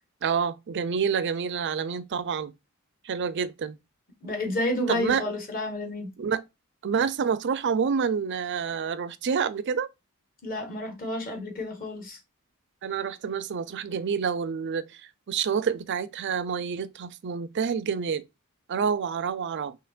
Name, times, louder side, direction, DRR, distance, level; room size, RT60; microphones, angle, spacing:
voice 1, 0.2-2.5 3.0-3.8 4.9-5.2 6.2-6.4 6.8-9.9 12.8-15.0 15.3-18.2 18.7-19.8, right 6 dB, 55° right, 0.4 m, -28 dB
voice 2, 4.2-6.1 10.4-12.2, left 1 dB, 40° left, 1.5 m, -30 dB
5.8 x 2.9 x 2.4 m
head